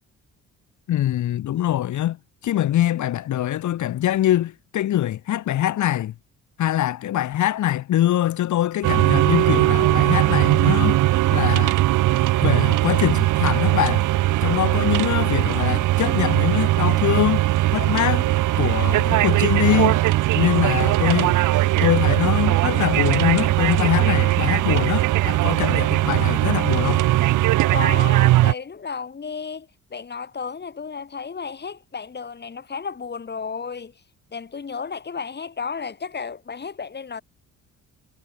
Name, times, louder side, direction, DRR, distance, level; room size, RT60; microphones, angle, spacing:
voice 1, 0.9-2.2 2.4-6.1 6.6-11.0 11.3-11.8 12.4-14.1 14.4-17.5 17.7-18.3 18.6-20.0 20.3-21.3 21.8-27.0, left 12 dB, 75° left, 2.6 m, -23 dB
sound 1, 8.8-28.5, right 16 dB, 85° right, 1.3 m, -19 dB
voice 2, 27.7-33.9 34.3-37.2, left 5 dB, 35° left, 3.4 m, -33 dB
cardioid pair, 90°, 30 cm